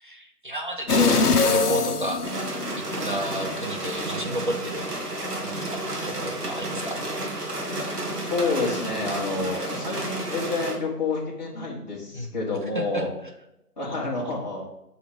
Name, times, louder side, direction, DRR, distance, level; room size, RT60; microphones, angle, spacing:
voice 1, 0.0-2.2 2.8-4.9 5.4-7.0 12.1-12.3 12.7-13.0, right 1 dB, 35° right, 3 dB, 0.7 m, -32 dB
sound 1, 0.9-3.0 3.5-3.6, left 4 dB, 70° left, 0.9 m, -22 dB
sound 2, 2.2-10.7, right 1 dB, 80° right, 2.2 m, -31 dB
voice 2, 8.3-13.1 13.8-14.6, left 3 dB, 25° left, -4 dB, 1.6 m, -28 dB
6.4 x 5.0 x 4.9 m, 0.86 s
figure-of-eight pair, 160°, 47 cm